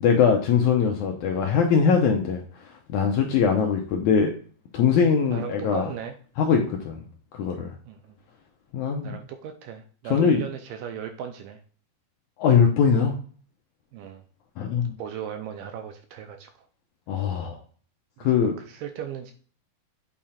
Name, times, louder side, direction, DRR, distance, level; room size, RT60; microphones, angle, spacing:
voice 1, 0.0-2.4 2.9-4.3 4.7-5.9 6.4-7.0 7.3-7.7 8.7-9.2 10.1-10.4 12.4-13.2 14.6-15.0 17.1-17.6 18.2-18.5, left 6 dB, 75° left, 1 dB, 1.8 m, -21 dB
voice 2, 5.3-6.2 7.9-8.0 9.0-11.6 13.9-14.2 15.0-16.5 18.7-19.3, right 8 dB, 80° right, 5 dB, 2.1 m, -36 dB
8.6 x 3.6 x 4.2 m, 0.43 s
omnidirectional pair, 4.3 m